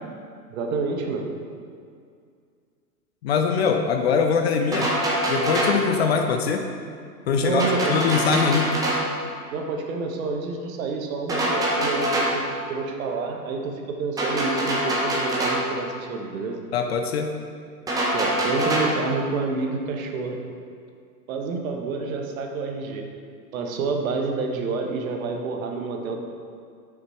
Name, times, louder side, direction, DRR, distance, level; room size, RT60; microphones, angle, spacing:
voice 1, 0.5-1.3 7.4-8.2 9.5-16.6 18.1-20.4 21.3-23.1 23.5-26.2, right 4 dB, 55° right, 3 dB, 1.0 m, -28 dB
voice 2, 3.2-4.9 5.3-6.7 7.3-8.7 16.7-17.3, left 5 dB, 40° left, 4 dB, 0.5 m, -22 dB
sound 1, 4.7-5.9 7.6-9.1 11.3-12.4 14.2-15.7 17.9-19.0, right 1 dB, 5° right, 0.7 m, -24 dB
7.2 x 5.9 x 3.2 m, 2.2 s
hypercardioid pair, 125°, 50 cm